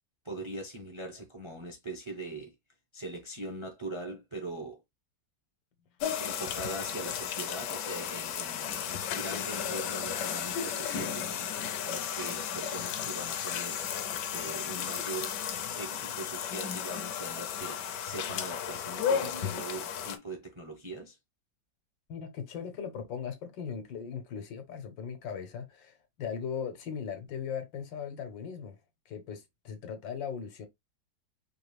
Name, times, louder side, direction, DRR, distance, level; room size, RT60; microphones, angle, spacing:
voice 1, 0.2-2.5 2.9-4.8 6.2-13.9 14.3-15.4 15.6-21.2, right 2 dB, 30° right, 0.5 m, -41 dB
sound 1, 6.0-20.2, left 8 dB, 70° left, 1.3 m, -34 dB
voice 2, 22.1-28.8 29.1-30.7, left 7 dB, 85° left, 1.8 m, -38 dB
4.9 x 2.5 x 3.3 m
omnidirectional pair, 2.0 m